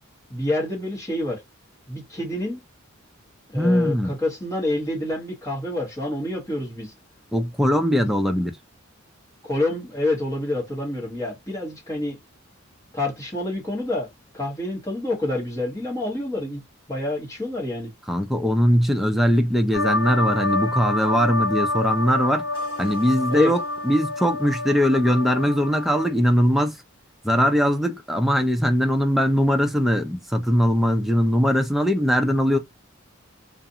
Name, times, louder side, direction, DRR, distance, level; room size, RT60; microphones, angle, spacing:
voice 1, 0.3-1.4 1.9-2.6 3.5-6.9 7.9-8.1 9.4-12.2 12.9-14.1 14.3-16.6 16.9-17.9 23.3-23.5, left 1 dB, 15° left, 1.2 m, -27 dB
voice 2, 3.5-4.1 7.3-8.5 18.1-22.4 22.8-26.8 27.2-32.6, equal, ahead, 0.4 m, -21 dB
sound 1, 19.7-26.1, left 2 dB, 80° left, 1.3 m, -27 dB
2.5 x 2.4 x 2.7 m
head